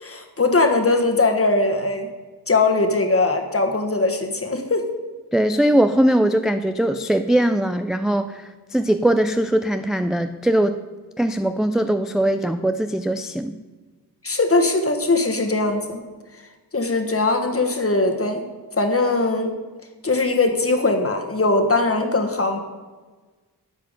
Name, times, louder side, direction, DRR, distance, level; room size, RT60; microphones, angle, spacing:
voice 1, 0.0-2.1 2.5-4.9 14.2-16.0 16.7-18.4 18.7-19.5 20.0-22.6, left 3 dB, 35° left, 5 dB, 1.4 m, -20 dB
voice 2, 5.3-10.8 11.2-13.5, right 1 dB, ahead, 8 dB, 0.3 m, -20 dB
13.0 x 8.0 x 5.2 m, 1.3 s
wide cardioid pair, 95°, 41 cm